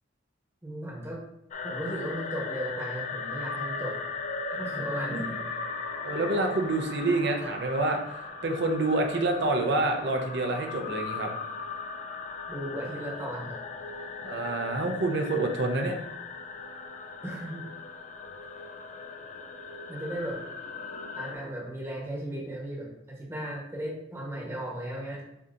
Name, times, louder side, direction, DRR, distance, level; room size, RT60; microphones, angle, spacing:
voice 1, 0.6-1.2 1.6-4.1 4.5-5.3 12.5-13.6 17.2-17.6 19.9-20.4 21.2-25.2, right 1 dB, 15° right, -2 dB, 1.0 m, -36 dB
sound 1, 1.5-21.3, left 4 dB, 40° left, 0.4 m, -38 dB
voice 2, 6.0-8.0 8.4-11.3 14.2-16.0, right 2 dB, 60° right, 3 dB, 0.6 m, -27 dB
7.0 x 2.8 x 2.5 m, 0.83 s
head